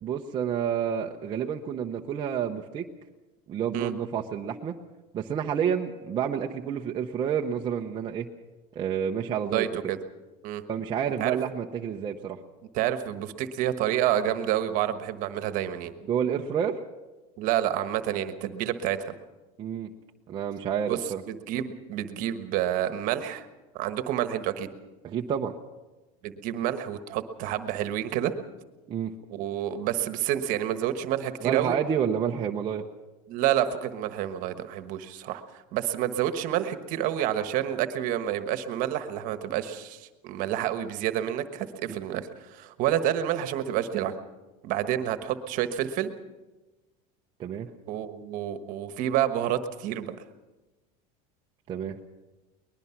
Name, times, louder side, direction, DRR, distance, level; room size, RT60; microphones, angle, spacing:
voice 1, 0.0-2.8 3.5-4.8 5.1-8.3 8.7-9.7 10.7-12.4 16.1-16.8 19.6-19.9 20.3-21.2 25.0-25.5 28.9-29.1 31.4-32.8 41.9-42.0 47.4-47.7 51.7-52.0, right 8 dB, 25° right, 0 dB, 0.8 m, -29 dB
voice 2, 9.5-10.0 10.4-10.6 11.2-11.4 12.7-15.9 17.4-19.1 20.9-21.0 21.3-23.5 23.7-24.7 26.2-28.3 29.3-31.8 33.3-44.1 44.6-46.1 47.9-50.1, right 11 dB, 45° right, 10 dB, 1.3 m, -29 dB
22.5 x 20.5 x 5.9 m, 1.2 s
cardioid pair, 160°, 19 cm